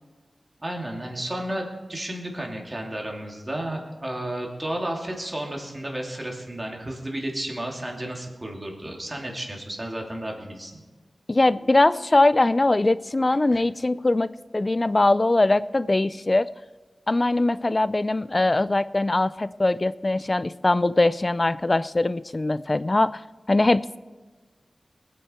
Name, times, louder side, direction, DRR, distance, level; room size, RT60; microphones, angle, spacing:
voice 1, 0.6-10.8 13.5-13.6, right 1 dB, 30° right, 0 dB, 2.7 m, -32 dB
voice 2, 11.3-16.5 17.1-23.2 23.5-24.0, left 2 dB, 35° left, 16 dB, 0.4 m, -21 dB
20.0 x 9.3 x 4.4 m, 1.3 s
wide cardioid pair, 55°, 0 cm